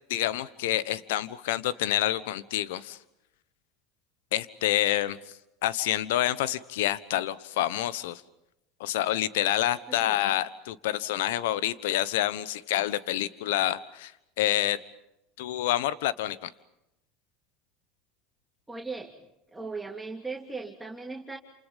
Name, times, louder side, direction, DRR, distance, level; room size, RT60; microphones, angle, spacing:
voice 1, 0.1-3.0 4.3-5.2 5.6-8.2 8.8-14.1 14.4-14.8 15.4-16.5, left 13 dB, 75° left, 16 dB, 1.2 m, -28 dB
voice 2, 18.7-19.2 19.5-21.4, right 3 dB, 10° right, -1 dB, 3.1 m, -38 dB
29.5 x 28.0 x 5.4 m, 0.86 s
hypercardioid pair, 95°, 0 cm